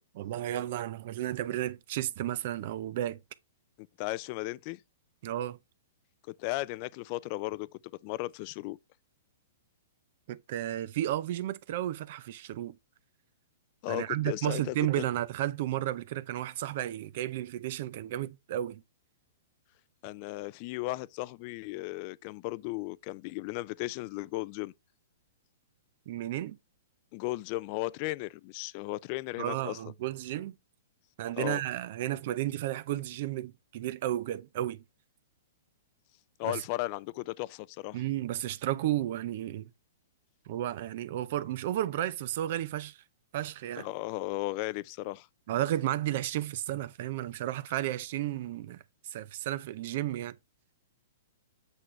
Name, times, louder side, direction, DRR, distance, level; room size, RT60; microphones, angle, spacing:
voice 1, 0.2-3.2 5.2-5.6 10.3-12.8 13.9-18.8 26.1-26.6 29.4-30.6 31.2-34.8 36.4-36.6 37.9-39.7 40.5-43.0 43.3-43.9 45.5-50.4, right 13 dB, 55° right, 0.5 m, -33 dB
voice 2, 4.0-4.8 6.4-7.7 8.0-8.8 13.8-15.0 20.0-24.7 27.1-29.8 31.4-31.6 36.4-38.0 43.8-45.3, left 19 dB, 45° left, 0.4 m, -35 dB
8.1 x 6.1 x 3.2 m
hypercardioid pair, 135°, 0 cm